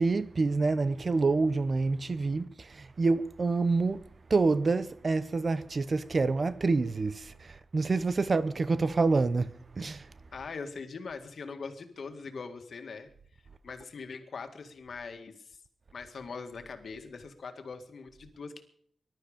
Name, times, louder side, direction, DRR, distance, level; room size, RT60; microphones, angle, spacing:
voice 1, 0.0-10.1, right 3 dB, 35° right, 0.8 m, -27 dB
voice 2, 10.3-15.6 15.9-18.6, left 4 dB, 60° left, 2.0 m, -42 dB
20.5 x 12.0 x 5.1 m
wide cardioid pair, 145°, 0 cm